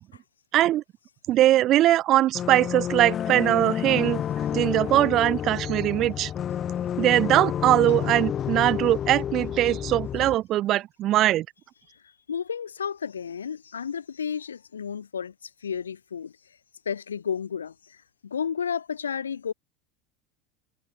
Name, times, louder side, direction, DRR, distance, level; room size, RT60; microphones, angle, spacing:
voice 1, 0.5-0.8 1.3-4.2 4.5-6.3 7.0-11.4, right 14 dB, 45° right, 1.4 m, -21 dB
sound 1, 2.3-10.3, left 9 dB, 35° left, 1.4 m, -29 dB
voice 2, 12.3-16.3 16.9-19.5, left 7 dB, 75° left, 5.3 m, -32 dB
figure-of-eight pair, 75°, 0 cm